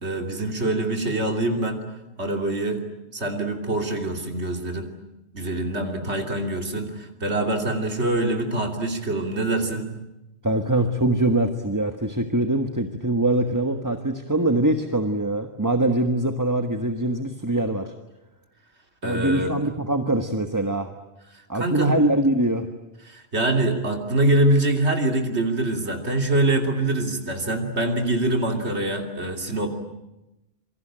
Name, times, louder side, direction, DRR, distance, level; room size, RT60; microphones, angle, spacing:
voice 1, 0.0-1.8 2.2-2.8 3.1-4.9 5.3-9.9 19.0-19.5 21.5-22.0 23.0-29.7, right 2 dB, 80° right, 3 dB, 3.3 m, -24 dB
voice 2, 10.4-17.9 19.0-20.9 21.5-22.7, right 1 dB, 15° right, 6 dB, 1.4 m, -23 dB
27.5 x 24.5 x 8.9 m, 0.94 s
omnidirectional pair, 1.1 m